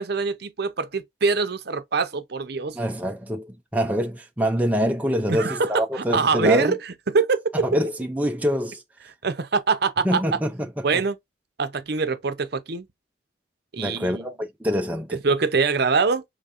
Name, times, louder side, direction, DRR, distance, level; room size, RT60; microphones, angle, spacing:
voice 1, 0.0-2.8 5.3-5.8 6.1-6.8 7.1-7.7 9.2-10.2 10.8-11.2 11.6-12.9 13.7-14.3 15.1-16.2, right 4 dB, 55° right, 0.7 m, -23 dB
voice 2, 2.7-6.7 7.5-8.8 10.0-11.0 13.8-15.2, equal, 10° right, 0.5 m, -25 dB
5.2 x 3.2 x 2.5 m
head